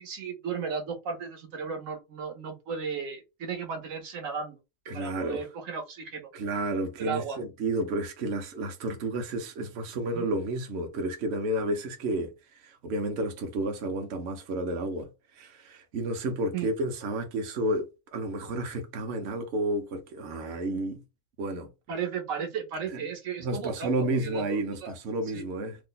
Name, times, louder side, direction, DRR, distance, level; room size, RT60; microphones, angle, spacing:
voice 1, 0.0-4.6 4.9-6.3 7.0-7.4 10.1-10.3 16.5-16.7 21.9-24.9 25.3-25.4, right 6 dB, 80° right, 1.2 m, -35 dB
voice 2, 4.9-5.4 6.3-15.1 15.3-21.0 21.4-21.7 23.4-25.8, right 2 dB, 60° right, 0.9 m, -31 dB
2.8 x 2.1 x 3.8 m
omnidirectional pair, 1.3 m